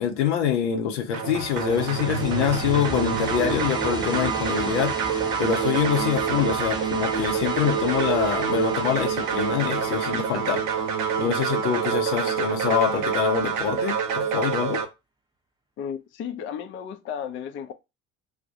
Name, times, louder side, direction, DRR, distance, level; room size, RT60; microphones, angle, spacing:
voice 1, 0.0-4.9 5.4-10.6 11.2-14.8, left 8 dB, 75° left, 0.6 m, -25 dB
sound 1, 1.1-14.8, right 7 dB, 60° right, 0.7 m, -27 dB
sound 2, 1.4-12.1, right 2 dB, 10° right, 0.7 m, -37 dB
voice 2, 15.8-17.7, left 8 dB, 35° left, 0.4 m, -34 dB
2.3 x 2.1 x 2.7 m
hypercardioid pair, 60°, 35 cm